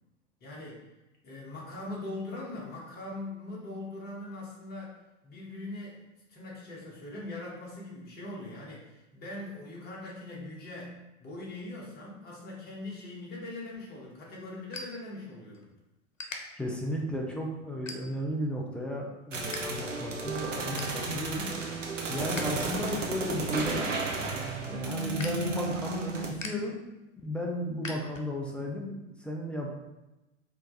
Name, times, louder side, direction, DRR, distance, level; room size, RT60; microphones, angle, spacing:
voice 1, 0.4-0.8 1.2-5.0 5.2-15.7, left 2 dB, 25° left, -4 dB, 1.6 m, -41 dB
sound 1, 13.7-15.7 15.9-16.4 17.0-17.2 17.7-18.4 18.8-19.6 19.9-20.0 20.4-21.0 21.5-22.4 22.8-28.6, left 2 dB, 85° left, 0.7 m, -44 dB
voice 2, 16.6-21.5 22.1-23.9 24.7-26.8 27.2-29.7, equal, 5° left, -2 dB, 0.4 m, -34 dB
sound 2, 19.3-26.3, right 3 dB, 75° right, 0.9 m, -33 dB
4.4 x 3.1 x 3.9 m, 0.99 s
figure-of-eight pair, 90°, 38 cm